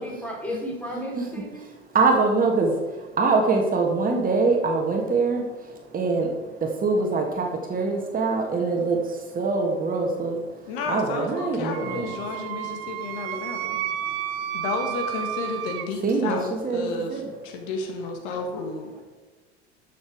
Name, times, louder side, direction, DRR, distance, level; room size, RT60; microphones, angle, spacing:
voice 1, 0.0-1.6 19.0-19.1, left 1 dB, 5° left, -2 dB, 3.6 m, -34 dB
voice 2, 1.9-2.7 3.2-5.4 5.9-6.3 6.8-9.0 9.4-10.4 10.9-12.1 16.0-16.4 16.6-17.2, right 3 dB, 25° right, 2 dB, 1.9 m, -23 dB
voice 3, 10.7-13.8 14.5-18.9, left 3 dB, 55° left, 4 dB, 1.7 m, -32 dB
Wind instrument woodwind instrument, 11.7-15.9, right 11 dB, 45° right, 0.9 m, -31 dB
12.5 x 6.9 x 4.7 m, 1.3 s
figure-of-eight pair, 75°, 33 cm